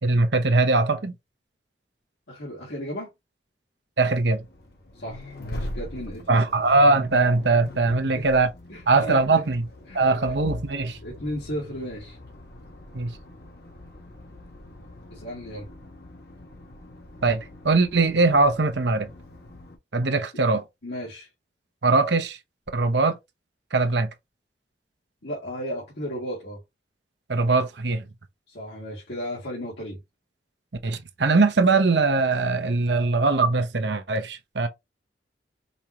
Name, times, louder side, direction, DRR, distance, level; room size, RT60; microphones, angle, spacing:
voice 1, 0.0-1.1 4.0-4.4 6.3-8.5 8.9-9.6 9.9-11.0 12.9-13.1 17.2-17.4 17.6-19.1 19.9-20.6 21.8-22.4 22.7-23.2 23.7-24.1 27.3-28.0 30.8-34.7, right 3 dB, 75° right, 0.9 m, -21 dB
voice 2, 2.3-3.1 4.9-6.4 8.1-8.3 8.7-9.4 9.9-10.4 11.0-12.2 15.1-15.7 20.8-21.3 25.2-26.6 28.5-30.0, equal, 80° left, 2.2 m, -35 dB
Accelerating revving vroom, 4.0-19.8, left 1 dB, 60° left, 1.1 m, -42 dB
5.4 x 2.9 x 3.1 m
head